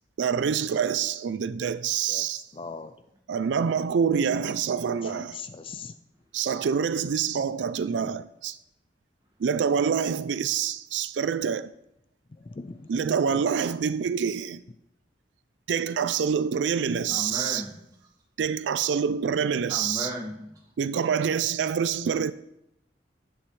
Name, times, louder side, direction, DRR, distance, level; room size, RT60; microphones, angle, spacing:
voice 1, 0.2-2.5 3.3-5.4 6.3-8.6 9.4-11.7 12.9-14.6 15.7-17.6 18.4-20.1 20.8-22.3, right 7 dB, 90° right, 0.4 m, -26 dB
voice 2, 2.5-2.9 5.0-5.9 12.4-13.4, left 4 dB, 30° left, 0.3 m, -41 dB
voice 3, 17.1-18.0 19.7-20.6, equal, 20° right, 1.8 m, -35 dB
10.5 x 8.5 x 3.2 m
head